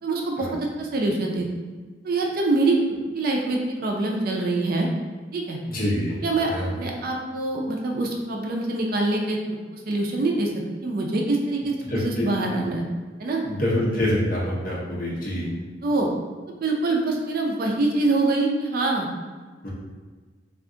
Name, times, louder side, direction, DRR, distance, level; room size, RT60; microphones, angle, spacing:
voice 1, 0.0-1.5 2.0-2.8 3.1-4.9 5.3-5.6 6.2-9.4 9.7-10.5 10.8-12.8 13.2-13.4 15.8-16.1 16.6-19.1, right 2 dB, 50° right, 1 dB, 0.4 m, -24 dB
voice 2, 5.7-6.2 6.5-6.7 11.9-12.3 13.4-15.5 19.6-19.7, left 1 dB, 50° left, -5 dB, 0.8 m, -26 dB
2.4 x 2.3 x 3.7 m, 1.4 s
head